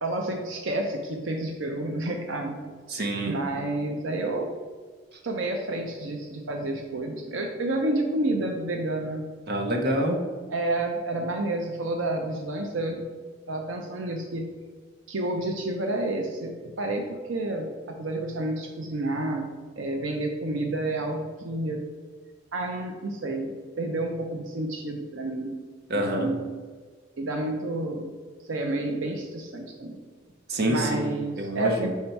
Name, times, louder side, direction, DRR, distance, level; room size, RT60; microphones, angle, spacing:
voice 1, 0.0-2.6 3.2-4.5 5.2-9.2 10.5-13.1 13.5-14.4 15.1-19.5 19.8-21.8 22.5-25.6 26.2-26.4 27.2-28.1 28.5-30.0 30.6-31.9, right 2 dB, 80° right, 3 dB, 0.7 m, -30 dB
voice 2, 2.9-3.4 9.5-10.2 25.9-26.3 30.5-31.1 31.4-31.9, right 1 dB, 55° right, 3 dB, 0.9 m, -26 dB
5.6 x 4.4 x 4.5 m, 1.5 s
head